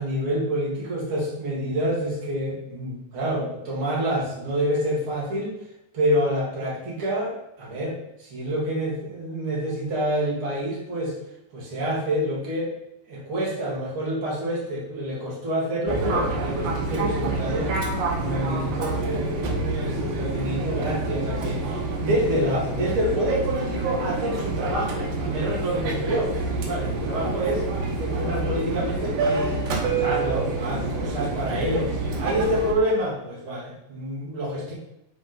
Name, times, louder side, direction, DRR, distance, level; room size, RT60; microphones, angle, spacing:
voice 1, 0.0-5.5 5.9-11.2 11.5-12.7 13.1-17.7 18.2-21.7 22.0-27.7 28.0-29.5 29.8-31.9 32.2-34.7, equal, 45° right, -5 dB, 2.0 m, -27 dB
Fixed-wing aircraft airplane, 15.9-32.7, right 3 dB, 75° right, 2.6 m, -27 dB
5.7 x 4.7 x 3.8 m, 0.86 s
omnidirectional pair, 4.1 m